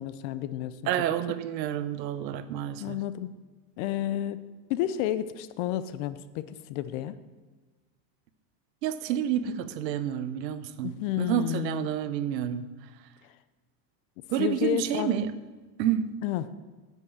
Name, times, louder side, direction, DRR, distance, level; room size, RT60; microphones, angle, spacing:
voice 1, 0.0-0.8 1.3-1.4 2.8-3.3 3.8-4.4 4.7-7.2 10.8-11.9 14.4-15.2 16.2-16.5, left 12 dB, 50° left, 14 dB, 0.7 m, -31 dB
voice 2, 0.9-3.0 8.8-12.6 14.3-15.4 15.8-16.1, right 10 dB, 90° right, 13 dB, 0.9 m, -29 dB
8.3 x 7.6 x 7.0 m, 1.3 s
supercardioid pair, 145°, 49 cm